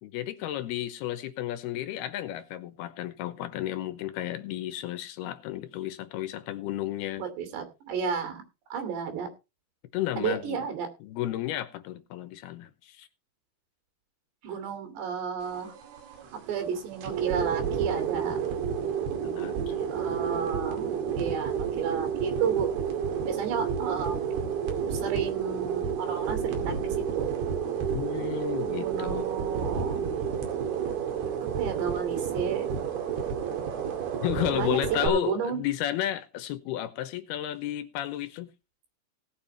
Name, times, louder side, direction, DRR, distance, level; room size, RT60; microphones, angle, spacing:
voice 1, 0.0-7.2 9.9-10.7 11.0-13.1 19.2-19.9 27.9-29.3 34.2-38.5, left 13 dB, 80° left, 2.7 m, -32 dB
voice 2, 7.2-8.4 8.7-9.3 10.2-10.9 14.4-15.7 16.3-18.4 19.9-22.7 23.2-24.2 24.8-27.3 28.8-30.3 31.6-32.7 34.5-35.6, right 7 dB, 80° right, 5.0 m, -32 dB
sound 1, 15.4-35.1, right 7 dB, 65° right, 4.1 m, -31 dB
18.0 x 7.2 x 4.4 m
omnidirectional pair, 4.9 m